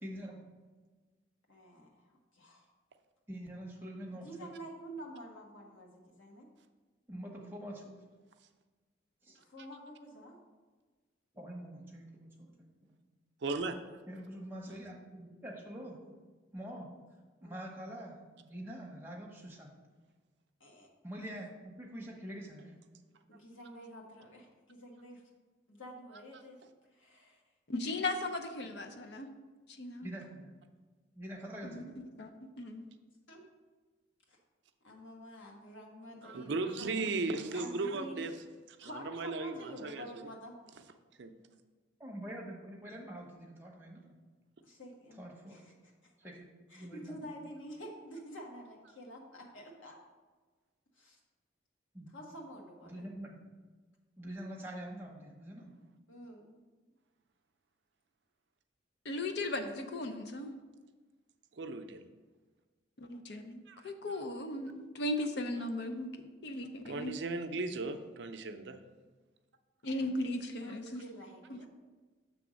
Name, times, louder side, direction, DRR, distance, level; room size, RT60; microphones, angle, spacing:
voice 1, 0.0-0.5 3.3-4.5 7.1-8.0 9.2-9.4 11.3-12.6 12.8-12.9 14.1-16.0 16.5-16.9 17.4-19.7 21.0-22.8 30.0-30.5 31.1-31.9 42.0-44.1 45.2-45.6 46.2-46.5 46.8-47.2 51.9-52.1 52.9-53.4 54.2-55.7, right 1 dB, 10° right, -2 dB, 0.9 m, -45 dB
voice 2, 1.5-2.7 4.1-6.5 9.4-10.4 16.0-16.2 17.4-17.6 20.6-20.9 23.3-25.2 25.7-26.6 26.9-27.4 33.3-33.4 34.3-34.4 34.8-37.1 37.5-38.2 38.8-40.6 44.6-46.1 46.7-50.0 51.0-51.2 52.1-53.0 56.1-56.6 70.6-71.7, equal, 85° left, 0 dB, 1.4 m, -49 dB
voice 3, 13.4-13.8 14.7-14.8 36.2-38.3 38.7-40.3 41.2-41.3 61.5-62.0 63.7-64.2 66.8-68.8, right 3 dB, 65° right, 7 dB, 0.5 m, -37 dB
voice 4, 27.7-29.3 29.7-30.1 31.6-31.8 32.2-32.9 59.0-60.6 63.0-66.1 66.4-67.2 69.8-71.0 71.5-71.6, left 2 dB, 60° left, 6 dB, 0.5 m, -37 dB
6.9 x 3.5 x 6.2 m, 1.3 s
head